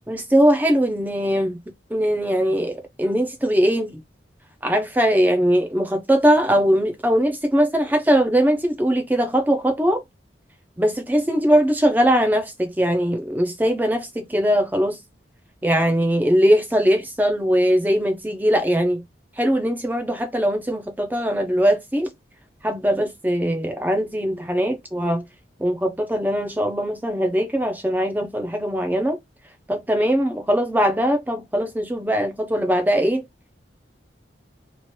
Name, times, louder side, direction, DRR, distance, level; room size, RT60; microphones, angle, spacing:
voice 1, 0.1-1.6 1.9-4.0 4.6-10.0 10.8-15.0 15.6-19.0 19.4-22.1 22.6-25.2 25.6-29.2 29.7-33.2, equal, 10° right, 0.5 m, -20 dB
2.9 x 2.5 x 3.0 m
head